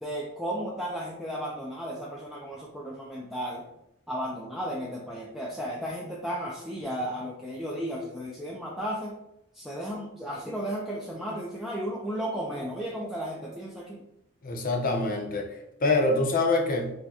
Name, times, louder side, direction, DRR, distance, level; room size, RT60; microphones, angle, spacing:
voice 1, 0.0-3.6 4.1-9.2 9.5-14.0, equal, ahead, -5 dB, 0.4 m, -34 dB
voice 2, 14.4-16.9, left 2 dB, 40° left, 1 dB, 0.6 m, -25 dB
4.5 x 2.2 x 2.8 m, 0.83 s
head